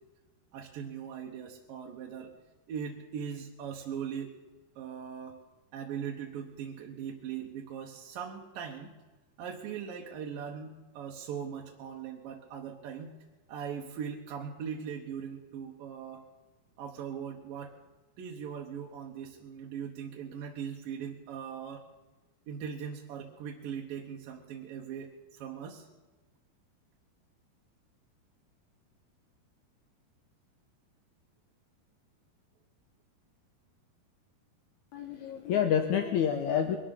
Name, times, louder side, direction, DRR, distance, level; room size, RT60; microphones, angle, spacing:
voice 1, 0.5-2.3 2.7-4.4 4.8-5.4 5.7-9.0 9.4-13.2 13.5-16.2 16.8-17.7 18.2-21.8 22.5-25.9, right 7 dB, 70° right, 0 dB, 2.5 m, -40 dB
voice 2, 34.9-36.8, left 8 dB, 85° left, 6 dB, 1.7 m, -28 dB
22.5 x 12.5 x 4.2 m, 1.2 s
omnidirectional pair, 4.5 m